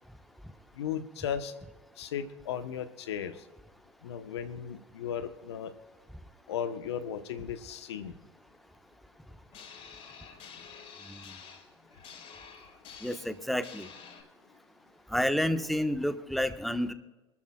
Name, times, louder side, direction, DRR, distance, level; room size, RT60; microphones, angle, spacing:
voice 1, 0.8-1.5 2.0-3.3 4.0-5.7 6.5-8.1, left 8 dB, 80° left, 10 dB, 1.1 m, -36 dB
sound 1, 9.5-14.2, left 6 dB, 50° left, 4.7 m, -49 dB
voice 2, 13.0-13.9 15.1-16.9, left 1 dB, ahead, 9 dB, 1.2 m, -30 dB
25.0 x 13.5 x 2.4 m, 1.1 s
hypercardioid pair, 75°, 14 cm